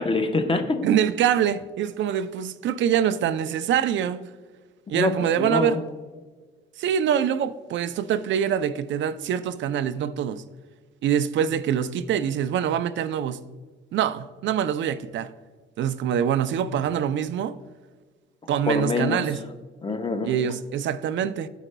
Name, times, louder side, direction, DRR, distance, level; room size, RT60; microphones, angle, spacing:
voice 1, 0.0-0.8 4.9-5.8 18.7-19.3 19.8-20.3, left 3 dB, 25° left, 0.9 m, -25 dB
voice 2, 0.8-4.2 4.9-5.8 6.8-10.4 11.0-13.4 13.9-15.3 15.8-17.6 18.5-19.4 20.2-21.5, right 9 dB, 70° right, 0.4 m, -24 dB
13.5 x 5.0 x 2.2 m
cardioid pair, 90°, 20 cm